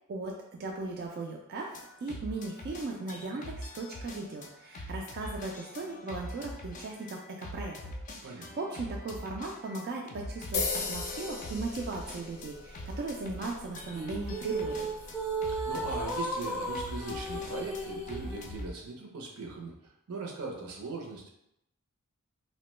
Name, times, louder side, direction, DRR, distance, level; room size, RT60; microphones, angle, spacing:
voice 1, 0.6-7.7 8.2-14.9, right 3 dB, 45° right, 0 dB, 0.3 m, -37 dB
sound 1, 1.6-18.7, left 1 dB, 35° left, 0.4 m, -43 dB
sound 2, 10.5-18.7, left 4 dB, 85° left, 0.6 m, -40 dB
sound 3, 13.9-18.5, right 1 dB, 10° right, 0.6 m, -35 dB
voice 2, 15.5-21.3, right 3 dB, 80° right, 0 dB, 0.6 m, -40 dB
2.9 x 2.1 x 3.0 m, 0.81 s
head